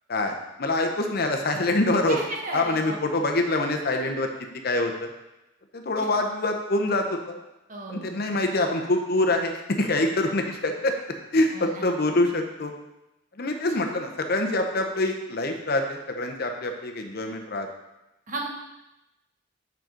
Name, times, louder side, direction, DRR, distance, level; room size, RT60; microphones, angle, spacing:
voice 1, 0.1-2.2 2.5-4.3 4.6-5.1 5.7-7.4 7.9-10.9 11.3-12.7 13.4-17.7, left 2 dB, 50° left, 4 dB, 0.8 m, -25 dB
voice 2, 2.1-3.0 6.0-6.1 7.7-8.4 11.5-12.1 13.7-13.8 18.3-18.5, right 2 dB, 40° right, -1 dB, 1.3 m, -35 dB
7.6 x 5.9 x 3.9 m, 0.94 s
head